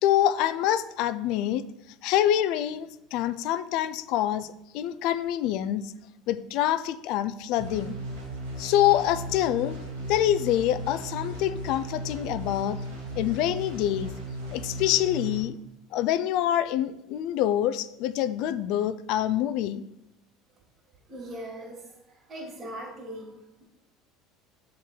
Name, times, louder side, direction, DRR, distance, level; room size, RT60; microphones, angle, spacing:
voice 1, 0.0-1.6 2.0-4.5 4.7-5.9 6.3-7.9 8.6-9.8 10.1-12.8 13.2-14.1 14.5-15.6 15.9-19.8, left 12 dB, 60° left, 15 dB, 0.4 m, -26 dB
sound 1, 7.6-15.4, right 1 dB, 90° right, 1.7 m, -36 dB
voice 2, 21.1-21.9 22.3-23.3, right 1 dB, 35° right, -3 dB, 2.1 m, -39 dB
7.1 x 3.8 x 4.4 m, 0.85 s
hypercardioid pair, 75°, 0 cm